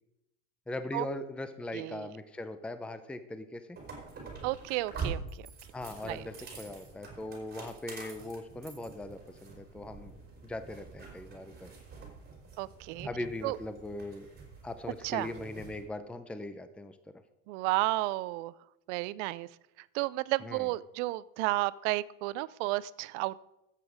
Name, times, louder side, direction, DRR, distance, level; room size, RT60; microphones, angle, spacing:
voice 1, 0.7-3.8 5.7-10.1 10.4-11.7 13.0-14.3 14.6-17.0 20.4-20.7, left 2 dB, 5° left, 10 dB, 0.6 m, -40 dB
voice 2, 1.7-2.1 4.4-5.5 6.0-6.2 12.6-13.1 13.4-13.6 15.0-15.3 17.5-18.5 18.9-19.5 19.9-23.4, right 19 dB, 70° right, 20 dB, 0.6 m, -32 dB
sound 1, 3.8-15.8, right 5 dB, 25° right, 4.6 m, -45 dB
13.5 x 8.4 x 5.0 m, 0.88 s
supercardioid pair, 115°, 37 cm